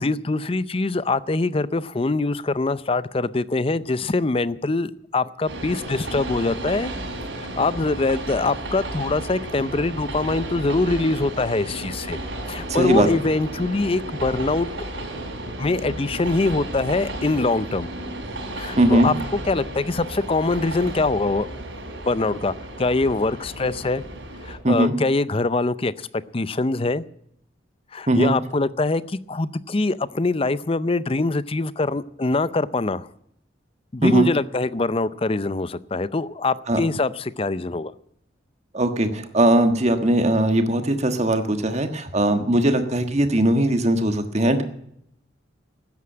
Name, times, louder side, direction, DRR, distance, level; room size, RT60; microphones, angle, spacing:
voice 1, 0.0-6.9 7.6-12.2 12.5-14.7 15.6-17.9 18.5-21.5 22.1-24.0 24.4-26.1 26.3-27.0 27.9-33.1 33.9-37.9, left 3 dB, 30° left, 17 dB, 0.5 m, -23 dB
Train, 5.4-24.6, right 1 dB, 75° right, 4.0 m, -33 dB
voice 2, 12.7-13.1 18.8-19.1 24.6-24.9 28.1-28.3 34.0-34.3 36.7-36.8 38.7-44.6, right 1 dB, 35° right, 7 dB, 1.5 m, -19 dB
13.5 x 9.6 x 8.7 m, 0.72 s
head